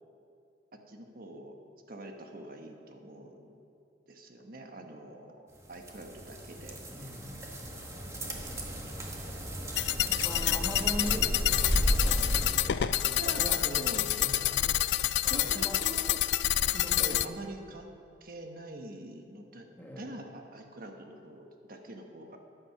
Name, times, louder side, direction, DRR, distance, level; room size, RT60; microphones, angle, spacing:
voice 1, 0.9-1.5 1.9-3.6 4.1-5.4 5.7-6.8 8.0-9.0 12.8-14.3 14.6-14.8 15.3-16.2 16.8-17.9 18.2-19.7 20.0-22.4, right 1 dB, 55° right, 3 dB, 1.2 m, -44 dB
sound 1, 5.6-12.5, equal, 15° right, 1.5 m, -33 dB
voice 2, 6.9-7.8 10.1-13.9 14.2-14.6 15.2-15.8 16.7-17.4 19.8-20.2, equal, 10° left, 0 dB, 1.4 m, -41 dB
sound 2, 9.8-17.3, left 12 dB, 80° left, 0.4 m, -28 dB
14.5 x 10.0 x 5.9 m, 2.6 s
head